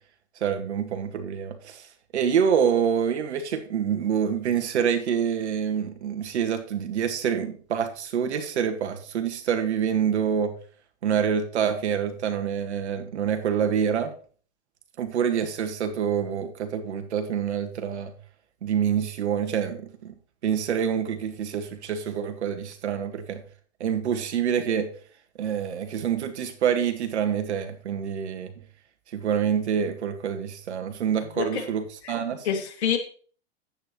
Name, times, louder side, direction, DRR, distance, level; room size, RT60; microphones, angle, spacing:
voice 1, 0.4-10.5 11.0-14.1 15.0-18.1 18.6-20.1 20.4-23.4 23.8-24.9 25.4-28.5 29.1-32.5, right 8 dB, 75° right, 1.9 m, -26 dB
voice 2, 31.4-31.7 32.0-32.2 32.4-33.0, left 8 dB, 70° left, 2.4 m, -27 dB
10.0 x 8.8 x 3.1 m
hypercardioid pair, 115°, 34 cm